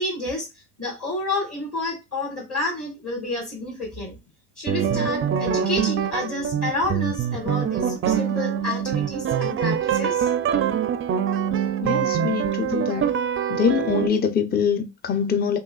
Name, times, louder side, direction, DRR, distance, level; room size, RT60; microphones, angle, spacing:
voice 1, 0.0-4.2 4.6-10.3, left 2 dB, 40° left, 1.8 m, -30 dB
sound 1, 4.7-14.1, right 8 dB, 35° right, 0.4 m, -24 dB
voice 2, 11.8-13.1 13.5-15.6, left 7 dB, 25° left, 0.5 m, -24 dB
3.7 x 3.0 x 2.3 m
cardioid pair, 90°, 36 cm